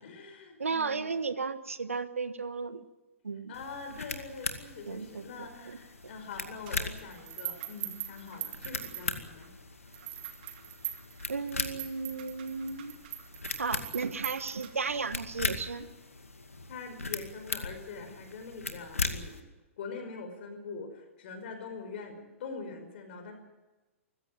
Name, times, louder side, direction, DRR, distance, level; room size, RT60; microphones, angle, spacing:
voice 1, 0.0-1.1 3.5-9.5 16.7-19.3 19.8-23.3, left 4 dB, 50° left, 6 dB, 5.2 m, -43 dB
voice 2, 0.6-2.8 3.2-3.5 4.9-5.8 6.0-6.1 11.3-12.9 13.6-15.9, right 4 dB, 75° right, 12 dB, 1.5 m, -34 dB
sound 1, 3.5-19.4, left 3 dB, 85° left, 2.3 m, -39 dB
sound 2, 6.7-9.5 9.9-15.1, right 13 dB, 45° right, 2.3 m, -42 dB
25.0 x 15.5 x 9.0 m, 1.1 s
figure-of-eight pair, 110°, 7 cm